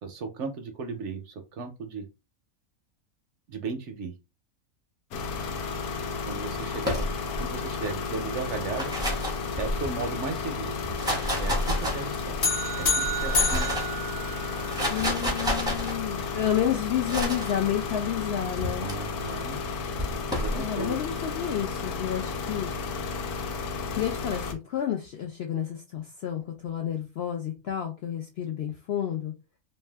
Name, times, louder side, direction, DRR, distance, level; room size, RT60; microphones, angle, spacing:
voice 1, 0.0-2.1 3.5-4.1 6.2-7.1 7.4-8.9 9.6-10.7 11.4-12.4 12.8-13.7 18.8-19.6 20.4-21.0, right 4 dB, 65° right, 5 dB, 0.8 m, -35 dB
sound 1, 5.1-24.5, left 4 dB, 85° left, 1.1 m, -33 dB
sound 2, 6.8-7.5 8.5-10.0 10.8-12.4 13.0-14.0 14.5-15.9 17.1-17.5 18.6-18.9 20.0-20.6, equal, 5° right, 0.5 m, -30 dB
sound 3, 12.4-14.9, left 2 dB, 50° left, 1.0 m, -28 dB
voice 2, 14.9-18.9 20.5-22.7 23.9-29.3, left 10 dB, 70° left, 2 dB, 0.6 m, -30 dB
2.6 x 2.1 x 3.3 m, 0.26 s
omnidirectional pair, 1.5 m